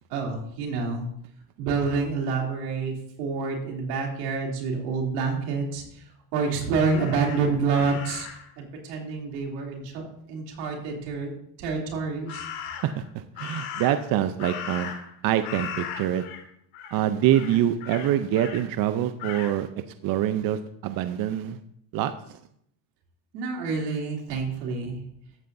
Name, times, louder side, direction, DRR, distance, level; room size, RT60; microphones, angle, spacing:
voice 1, 0.1-1.1 1.6-5.8 6.3-8.3 8.6-11.3 11.6-12.5 23.3-25.0, right 4 dB, 90° right, 0 dB, 3.0 m, -28 dB
Crow, 6.8-8.5 12.3-13.0 13.4-15.2 15.4-16.4 16.7-17.0 17.3-18.6 19.2-19.5, left 8 dB, 75° left, 2.0 m, -37 dB
voice 2, 13.4-14.9 15.2-16.3 16.9-19.7 20.0-21.6 21.9-22.1, right 11 dB, 45° right, 10 dB, 0.7 m, -25 dB
14.0 x 9.0 x 2.7 m, 0.69 s
supercardioid pair, 110°, 47 cm